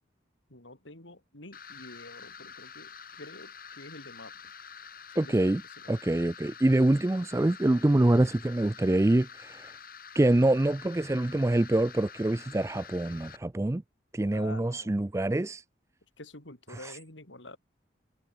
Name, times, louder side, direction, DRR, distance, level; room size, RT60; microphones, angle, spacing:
voice 1, 0.5-4.3 5.1-5.6 14.3-14.9 16.2-17.6, left 2 dB, 90° left, 6.0 m, -48 dB
sound 1, 1.5-13.4, left 6 dB, 50° left, 6.6 m, -47 dB
voice 2, 5.2-5.6 5.9-9.7 10.1-13.8 14.1-15.6 16.8-16.9, right 1 dB, 15° right, 0.4 m, -25 dB
head